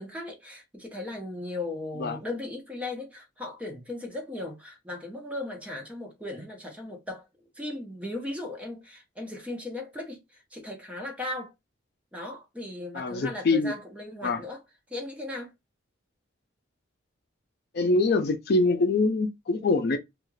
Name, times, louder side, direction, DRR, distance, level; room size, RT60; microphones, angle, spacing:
voice 1, 0.0-7.3 7.5-11.5 12.1-14.6 14.9-15.5, left 2 dB, 5° right, 0.6 m, -37 dB
voice 2, 12.9-13.7 14.2-14.4 17.7-20.0, left 3 dB, 55° left, 0.4 m, -24 dB
2.4 x 2.3 x 3.0 m
head